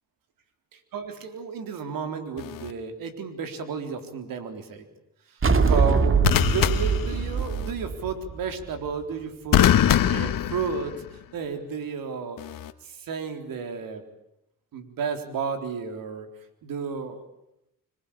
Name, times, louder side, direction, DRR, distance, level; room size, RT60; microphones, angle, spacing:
voice 1, 0.9-4.8 5.3-9.8 10.1-12.4 12.8-14.0 14.7-16.3 16.6-17.2, right 5 dB, 80° right, 7 dB, 3.9 m, -32 dB
sound 1, 2.4-2.7 6.2-7.7 9.5-11.2 12.4-12.7, left 11 dB, 75° left, 1.6 m, -23 dB
sound 2, 5.4-8.9, right 5 dB, 40° right, 2.3 m, -23 dB
26.0 x 21.5 x 8.7 m, 0.83 s
cardioid pair, 75°, 33 cm